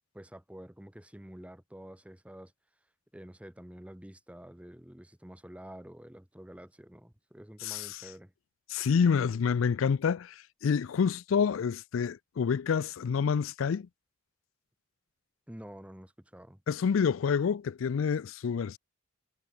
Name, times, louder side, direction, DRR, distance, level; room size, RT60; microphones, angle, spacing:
voice 1, 0.1-2.5 3.1-8.3 15.5-16.6, equal, 5° right, 1.2 m, -48 dB
voice 2, 7.6-8.0 8.7-13.9 16.7-18.8, left 6 dB, 90° left, 0.4 m, -28 dB
head